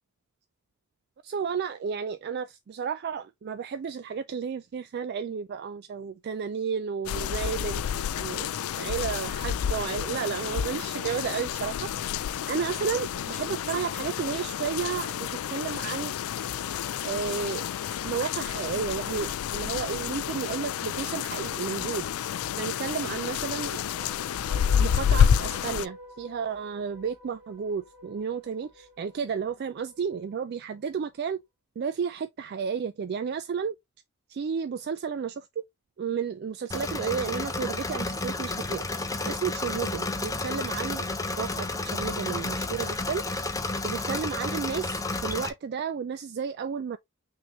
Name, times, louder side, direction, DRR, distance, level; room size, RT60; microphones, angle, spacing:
voice 1, 1.2-7.8 8.2-16.1 17.0-17.6 18.0-22.1 22.6-23.8 24.8-31.4 31.8-33.7 34.3-35.6 36.0-38.9 39.2-41.1 41.4-43.3 43.8-47.0, right 6 dB, 50° right, 0.3 m, -32 dB
sound 1, 7.1-25.9, left 8 dB, 80° left, 0.4 m, -29 dB
sound 2, 23.8-31.0, left 1 dB, ahead, 2.0 m, -49 dB
Engine / Mechanisms, 36.7-45.5, left 3 dB, 15° left, 0.7 m, -31 dB
6.0 x 2.8 x 3.1 m
head